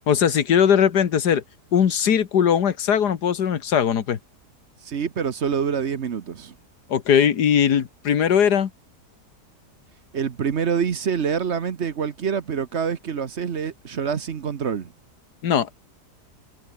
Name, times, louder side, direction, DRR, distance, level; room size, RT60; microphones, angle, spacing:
voice 1, 0.1-1.4 1.7-4.2 6.9-8.7 15.4-15.7, left 8 dB, 75° left, 1.9 m, -19 dB
voice 2, 4.8-6.5 10.1-14.9, right 7 dB, 45° right, 1.2 m, -26 dB
omnidirectional pair, 1.8 m